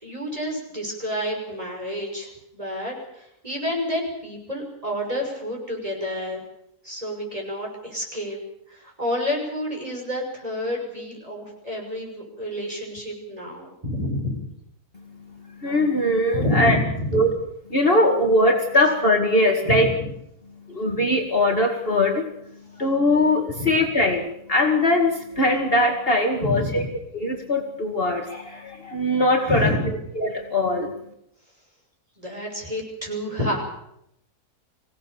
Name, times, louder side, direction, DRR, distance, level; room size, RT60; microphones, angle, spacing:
voice 1, 0.0-6.4 6.8-8.4 8.7-14.5 16.3-17.2 19.6-19.9 23.6-23.7 26.4-26.8 29.5-29.9 32.2-33.6, left 1 dB, 25° right, 1 dB, 6.5 m, -29 dB
voice 2, 14.9-16.8 17.1-17.3 17.7-19.9 20.6-22.3 22.7-26.8 27.1-29.8 30.2-30.9, left 1 dB, 40° left, 2 dB, 2.3 m, -21 dB
25.5 x 17.0 x 7.1 m, 0.77 s
omnidirectional pair, 1.6 m